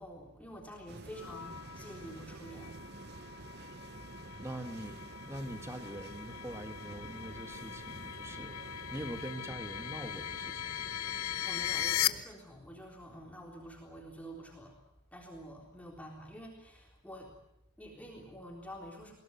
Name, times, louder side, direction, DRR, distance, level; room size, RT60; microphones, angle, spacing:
voice 1, 0.0-4.4 11.4-14.8 15.1-17.3 17.8-19.1, equal, 5° left, 0 dB, 3.7 m, -49 dB
sound 1, 0.9-12.2, right 3 dB, 45° right, 0.9 m, -49 dB
sound 2, 1.1-12.1, left 11 dB, 80° left, 0.8 m, -39 dB
voice 2, 4.4-8.6 8.9-10.7, right 1 dB, 10° right, 7 dB, 1.8 m, -43 dB
22.0 x 17.5 x 9.3 m, 0.82 s
head